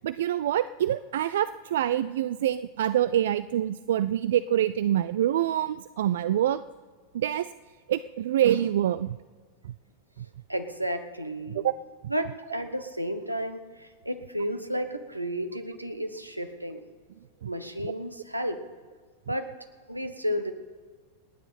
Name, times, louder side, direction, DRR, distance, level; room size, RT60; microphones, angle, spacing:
voice 1, 0.0-6.6 7.1-7.5 7.9-9.2 10.2-10.3 11.5-11.7 17.4-17.5, right 11 dB, 60° right, 15 dB, 0.3 m, -26 dB
voice 2, 10.5-11.7 12.1-16.8 17.4-18.6 19.3-19.5 19.9-20.5, equal, 85° right, 8 dB, 1.1 m, -32 dB
28.0 x 9.8 x 4.3 m, 1.5 s
figure-of-eight pair, 90°, 0 cm